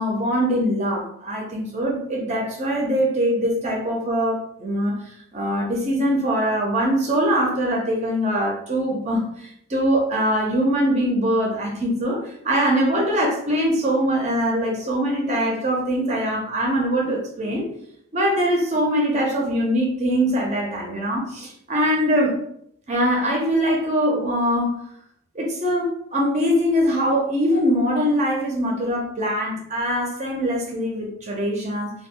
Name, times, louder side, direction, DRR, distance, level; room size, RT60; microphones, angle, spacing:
voice 1, 0.0-17.7 18.1-22.3 22.9-24.8 25.3-31.9, equal, 35° right, -1 dB, 0.4 m, -22 dB
2.2 x 2.0 x 3.5 m, 0.71 s
head